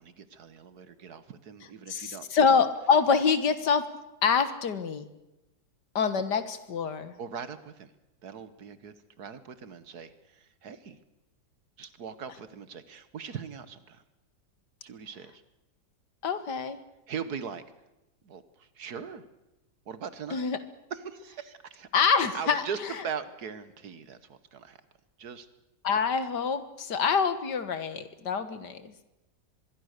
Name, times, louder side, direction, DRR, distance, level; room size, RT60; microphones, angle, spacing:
voice 1, 0.0-2.3 7.2-7.9 8.2-11.0 11.8-14.0 14.8-15.4 17.1-17.6 18.2-19.2 19.9-20.5 20.9-21.9 22.3-22.8 23.0-24.8 25.2-25.5, right 7 dB, 65° right, 13 dB, 1.8 m, -40 dB
voice 2, 1.9-3.9 4.2-5.1 6.0-7.1 16.2-16.8 20.3-20.6 21.9-22.6 25.8-28.9, left 6 dB, 75° left, 12 dB, 2.0 m, -26 dB
24.5 x 22.0 x 6.7 m, 0.96 s
omnidirectional pair, 1.9 m